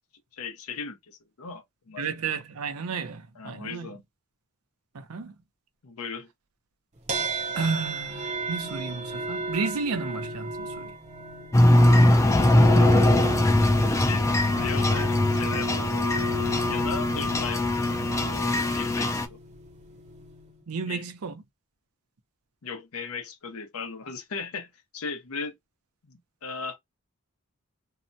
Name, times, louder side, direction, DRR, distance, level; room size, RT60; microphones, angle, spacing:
voice 1, 0.3-2.0 3.4-4.0 5.8-6.3 12.7-13.3 13.8-15.8 16.7-17.6 18.1-19.4 20.9-21.0 22.6-25.5 26.1-26.8, left 5 dB, 70° left, 0.7 m, -37 dB
voice 2, 2.0-3.9 4.9-5.3 7.5-10.9 20.7-21.4, right 4 dB, 75° right, 0.6 m, -32 dB
sound 1, 7.1-20.6, right 1 dB, 30° right, 0.6 m, -34 dB
sound 2, 11.5-19.3, left 1 dB, 15° left, 0.3 m, -21 dB
2.8 x 2.1 x 2.5 m
head